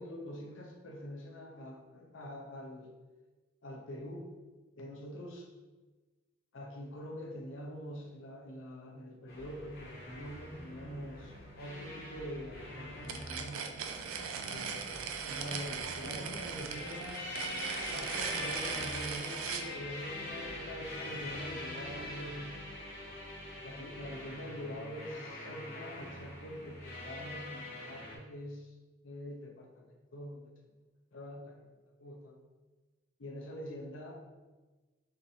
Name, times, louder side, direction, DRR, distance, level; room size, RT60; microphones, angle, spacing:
voice 1, 0.0-2.9 3.6-4.3 4.8-5.5 6.5-13.8 14.5-17.4 17.9-22.6 23.6-28.7 29.0-30.4 31.1-31.5 32.0-32.4 33.2-34.2, equal, 70° left, 1 dB, 0.6 m, -45 dB
sound 1, 9.3-28.2, left 1 dB, 45° left, 0.9 m, -44 dB
sound 2, 13.0-19.7, right 6 dB, 85° right, 0.4 m, -39 dB
4.4 x 2.7 x 2.6 m, 1.2 s
head